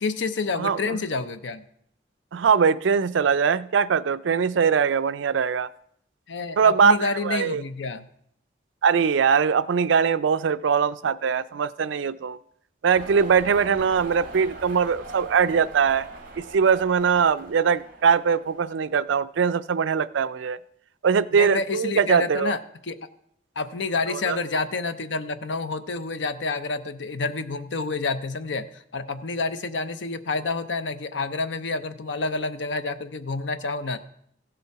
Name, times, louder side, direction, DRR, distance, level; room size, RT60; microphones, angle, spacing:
voice 1, 0.0-1.6 6.3-8.1 21.3-23.0 23.6-34.0, left 3 dB, 80° left, 11 dB, 0.6 m, -29 dB
voice 2, 0.6-1.0 2.3-5.7 6.6-7.6 8.8-12.4 12.8-16.1 16.4-20.6 21.0-22.5 24.1-24.4, right 6 dB, 85° right, 14 dB, 0.4 m, -21 dB
sound 1, 12.9-19.1, right 2 dB, 50° right, 2.1 m, -41 dB
15.5 x 6.9 x 4.7 m, 0.71 s
head